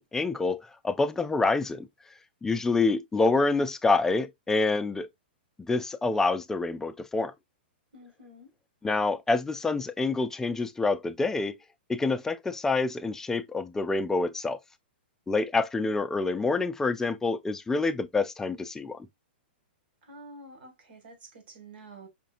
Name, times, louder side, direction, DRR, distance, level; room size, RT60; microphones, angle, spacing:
voice 1, 0.0-1.9 2.4-5.1 5.7-7.3 8.8-11.6 11.9-14.6 15.3-19.1, left 3 dB, 10° left, 0.4 m, -27 dB
voice 2, 7.9-8.5 20.0-22.1, right 2 dB, 65° right, 1.7 m, -49 dB
5.1 x 2.7 x 2.4 m
hypercardioid pair, 130°, 6 cm